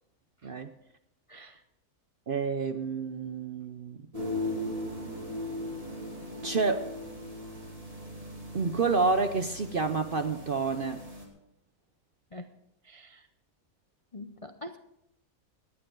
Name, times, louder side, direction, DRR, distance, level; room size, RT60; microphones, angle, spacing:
voice 1, 0.4-0.7 2.3-4.0 6.4-6.9 8.5-11.0, right 4 dB, 50° right, 8 dB, 0.7 m, -29 dB
sound 1, 4.1-11.2, left 1 dB, 25° right, 2.6 m, -38 dB
voice 2, 12.9-13.2 14.1-14.8, left 1 dB, 40° left, 6 dB, 0.4 m, -44 dB
18.0 x 11.5 x 3.8 m, 0.78 s
omnidirectional pair, 1.6 m